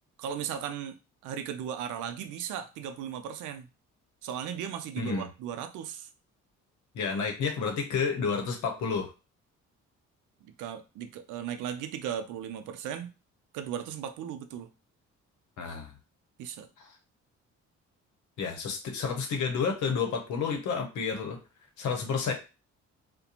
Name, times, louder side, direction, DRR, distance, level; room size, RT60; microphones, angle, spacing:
voice 1, 0.2-3.7 4.2-6.1 10.4-13.1 13.5-14.7 16.4-16.7, right 9 dB, 85° right, 9 dB, 0.5 m, -37 dB
voice 2, 5.0-5.3 6.9-9.1 15.6-15.9 18.4-21.4 21.8-22.3, left 5 dB, 75° left, 3 dB, 0.8 m, -30 dB
2.4 x 2.1 x 2.8 m, 0.30 s
cardioid pair, 90°, 30 cm